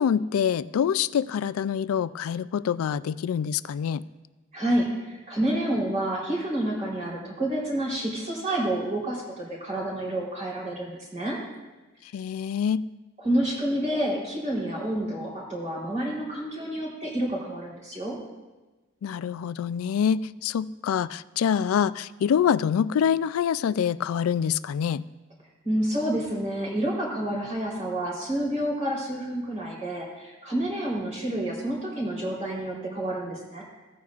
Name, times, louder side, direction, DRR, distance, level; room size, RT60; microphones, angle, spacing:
voice 1, 0.0-4.0 12.1-12.9 19.0-25.0, left 8 dB, 90° left, 17 dB, 0.3 m, -25 dB
voice 2, 4.5-11.4 13.2-18.2 25.6-33.6, right 1 dB, 35° right, -4 dB, 3.6 m, -29 dB
16.5 x 9.3 x 2.4 m, 1.2 s
head